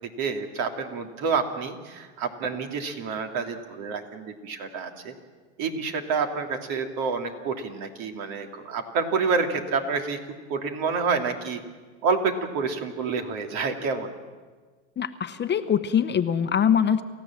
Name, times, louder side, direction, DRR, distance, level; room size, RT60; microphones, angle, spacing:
voice 1, 0.0-5.1 5.6-10.2 10.5-11.6 12.0-14.1, right 5 dB, 60° right, 4 dB, 2.9 m, -28 dB
voice 2, 15.0-17.0, left 8 dB, 25° left, 10 dB, 0.9 m, -23 dB
28.5 x 15.0 x 7.5 m, 1.4 s
supercardioid pair, 115°, 39 cm